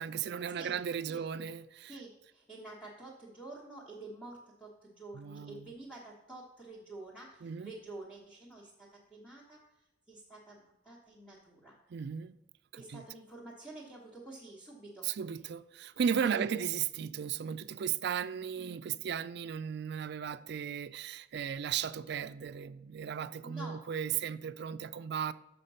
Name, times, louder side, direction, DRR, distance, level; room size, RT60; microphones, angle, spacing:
voice 1, 0.0-2.0 5.1-5.7 7.4-7.7 11.9-12.4 12.7-13.0 15.0-25.3, right 7 dB, 60° right, 0.4 m, -36 dB
voice 2, 1.9-9.6 10.1-11.8 12.8-15.1 16.2-16.6 23.4-23.8, right 3 dB, 5° left, 1.3 m, -48 dB
6.7 x 5.9 x 5.5 m
head